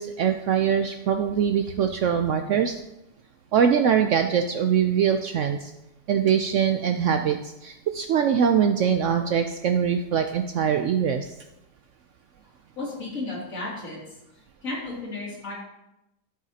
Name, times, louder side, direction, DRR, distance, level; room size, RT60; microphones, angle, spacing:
voice 1, 0.0-2.8 3.5-5.7 6.1-11.4, right 8 dB, 85° right, 6 dB, 0.6 m, -23 dB
voice 2, 12.8-14.0 14.6-15.5, left 2 dB, 50° left, -4 dB, 3.0 m, -33 dB
10.5 x 8.8 x 2.8 m, 0.90 s
omnidirectional pair, 1.8 m